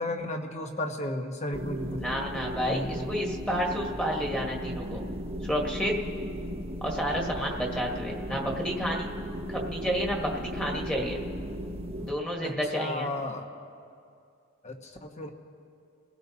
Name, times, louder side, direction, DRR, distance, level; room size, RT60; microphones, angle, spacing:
voice 1, 0.0-2.0 2.7-3.1 12.4-13.4 14.6-15.3, left 1 dB, 35° left, 4 dB, 1.3 m, -34 dB
sound 1, 1.5-12.1, equal, 30° right, 1.1 m, -36 dB
voice 2, 2.0-5.0 5.5-5.9 6.8-9.1 9.5-11.2 12.0-13.1, equal, 5° left, -1 dB, 1.7 m, -30 dB
29.5 x 16.5 x 2.9 m, 2.4 s
head